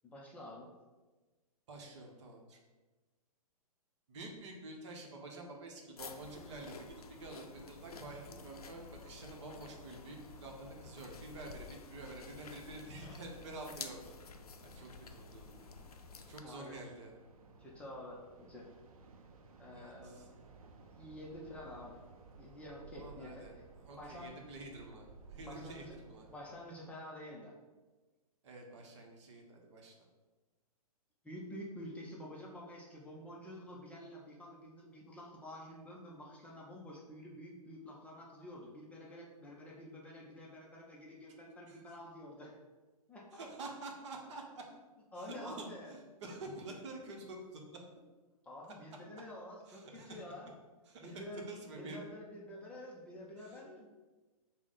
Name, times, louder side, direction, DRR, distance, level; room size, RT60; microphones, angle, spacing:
voice 1, 0.0-0.7 16.4-16.8 17.4-18.7 19.6-20.4 20.9-22.0 22.4-23.4 23.9-24.3 25.4-26.0 26.2-27.5 31.2-42.6 43.1-43.5 45.1-45.9 48.4-50.5 51.0-51.5 51.7-53.9, left 1 dB, 5° left, -4 dB, 0.5 m, -49 dB
voice 2, 1.7-2.6 4.1-14.2 14.6-15.7 16.3-17.1 19.7-20.3 22.9-23.5 23.8-26.3 28.4-30.1 41.7-41.8 43.3-44.7 45.2-47.8 49.7-50.2 50.9-51.1 51.5-52.0 53.4-53.6, right 2 dB, 50° right, 1 dB, 0.9 m, -48 dB
sound 1, 6.0-16.4, left 5 dB, 70° left, 0.5 m, -51 dB
sound 2, 7.7-26.6, right 4 dB, 65° right, 0.5 m, -59 dB
5.8 x 2.2 x 4.0 m, 1.2 s
figure-of-eight pair, 115°, 20 cm